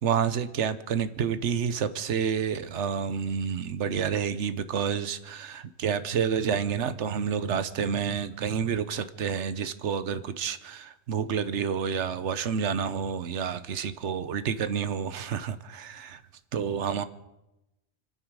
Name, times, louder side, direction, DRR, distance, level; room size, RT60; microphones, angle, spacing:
voice 1, 0.0-16.2 16.5-17.0, right 7 dB, 80° right, 13 dB, 1.2 m, -29 dB
29.0 x 9.8 x 4.8 m, 0.94 s
omnidirectional pair, 1.2 m